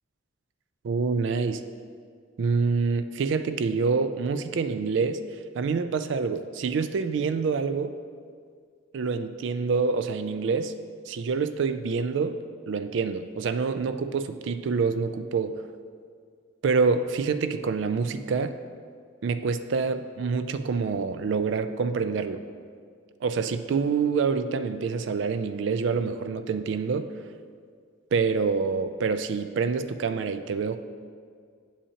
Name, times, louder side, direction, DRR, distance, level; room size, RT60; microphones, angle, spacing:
voice 1, 0.8-1.6 2.4-5.2 5.5-7.9 8.9-10.7 11.1-12.4 12.7-15.6 16.6-18.6 19.2-22.4 23.2-27.1 28.1-30.8, right 5 dB, 60° right, 11 dB, 0.3 m, -26 dB
8.3 x 5.5 x 2.8 m, 2.1 s
head